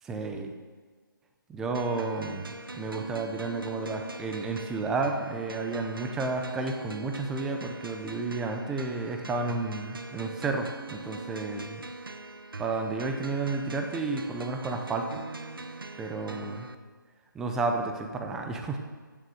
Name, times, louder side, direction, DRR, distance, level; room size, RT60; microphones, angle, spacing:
voice 1, 0.0-0.5 1.5-11.8 12.6-15.1 16.0-16.7 17.3-18.8, right 3 dB, 5° right, 4 dB, 0.5 m, -31 dB
sound 1, 1.7-16.7, right 3 dB, 90° right, 0.9 m, -42 dB
14.5 x 6.5 x 6.4 m, 1.5 s
figure-of-eight pair, 160°, 11 cm